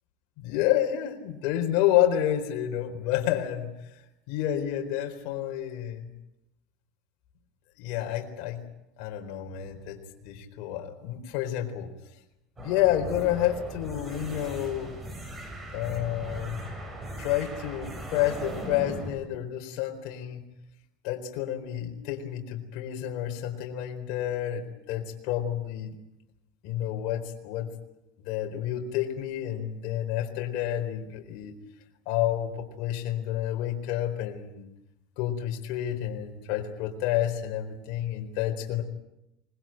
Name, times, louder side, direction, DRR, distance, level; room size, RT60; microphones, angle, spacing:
voice 1, 0.4-4.0 4.3-6.1 7.8-8.6 9.0-11.9 12.6-14.9 15.7-16.6 17.2-20.4 21.0-26.0 26.6-27.7 28.2-31.6 32.1-34.7 35.2-38.8, left 12 dB, 60° left, 3 dB, 4.2 m, -29 dB
sound 1, 12.6-19.1, right 1 dB, 20° right, 7.2 m, -38 dB
25.0 x 21.0 x 9.0 m, 0.87 s
supercardioid pair, 140°, 0 cm